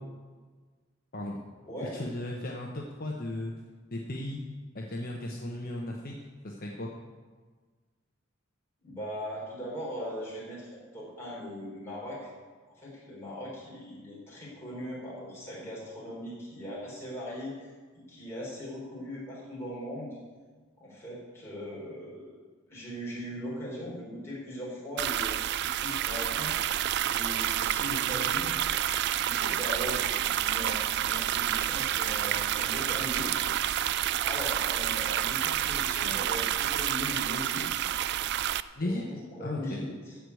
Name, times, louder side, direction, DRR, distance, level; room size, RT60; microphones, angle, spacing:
voice 1, 1.1-1.4 1.9-3.5 3.9-4.4 4.7-6.1 6.4-6.9 38.8-39.0 39.4-39.8, left 1 dB, 45° left, -1 dB, 1.1 m, -35 dB
voice 2, 8.8-12.3 12.7-17.7 18.1-20.2 20.8-22.4 22.7-28.6 29.2-33.5 34.2-37.9 38.8-40.2, equal, 15° left, -6 dB, 4.3 m, -39 dB
sound 1, 25.0-38.6, right 11 dB, 55° right, 0.3 m, -29 dB
14.5 x 4.8 x 8.3 m, 1.4 s
head